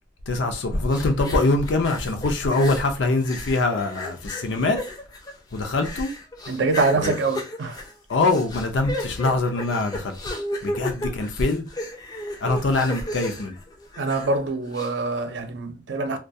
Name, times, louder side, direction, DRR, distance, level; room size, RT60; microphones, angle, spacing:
voice 1, 0.3-4.8 5.5-6.1 6.9-7.1 8.1-10.1 10.6-11.6 12.4-13.6, left 2 dB, 75° left, 0.5 m, -23 dB
sound 1, 0.9-2.9 3.2-14.4 14.7-14.9, left 1 dB, 20° left, 0.4 m, -34 dB
voice 2, 6.5-7.8 14.0-16.2, right 3 dB, 70° right, 0.4 m, -24 dB
2.2 x 2.2 x 2.6 m
head